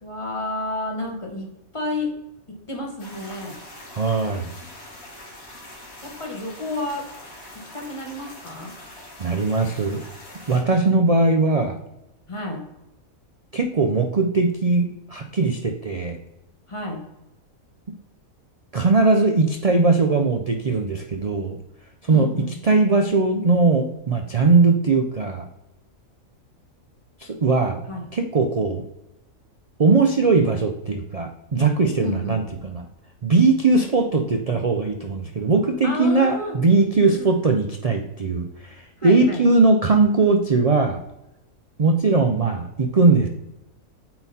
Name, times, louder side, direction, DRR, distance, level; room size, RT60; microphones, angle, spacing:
voice 1, 0.0-2.2 2.5-3.6 6.0-7.1 7.5-8.7 12.3-12.7 16.7-17.0 22.1-22.6 27.9-28.0 32.0-32.4 35.8-36.6 37.0-37.3 39.0-39.4, left 2 dB, 25° left, 0 dB, 1.3 m, -31 dB
sound 1, 3.0-10.6, left 1 dB, 50° left, 2.1 m, -43 dB
voice 2, 3.9-4.5 9.2-10.0 10.5-11.8 13.5-16.2 18.7-21.6 22.0-22.3 22.6-25.5 27.2-27.8 28.1-28.8 29.8-32.9 33.2-41.0 41.8-43.3, right 3 dB, 65° right, 5 dB, 0.3 m, -20 dB
8.6 x 3.9 x 4.1 m, 0.91 s
omnidirectional pair, 1.5 m